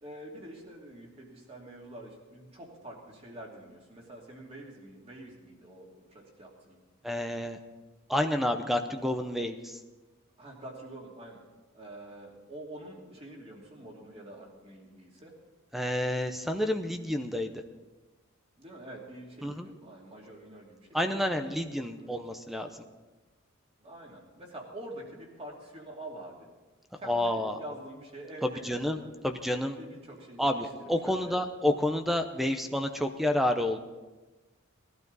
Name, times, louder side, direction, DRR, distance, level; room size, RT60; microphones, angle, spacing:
voice 1, 0.0-6.8 10.4-11.4 11.7-15.3 18.6-21.3 22.0-22.2 23.8-26.5 27.0-29.2 29.7-31.3, right 1 dB, 30° right, -1 dB, 2.8 m, -46 dB
voice 2, 7.0-7.6 8.1-9.8 15.7-17.5 19.4-19.7 20.9-22.8 27.0-27.6 28.6-29.0 29.2-29.8 30.4-33.8, left 1 dB, ahead, 7 dB, 0.7 m, -29 dB
19.0 x 12.0 x 4.1 m, 1.2 s
head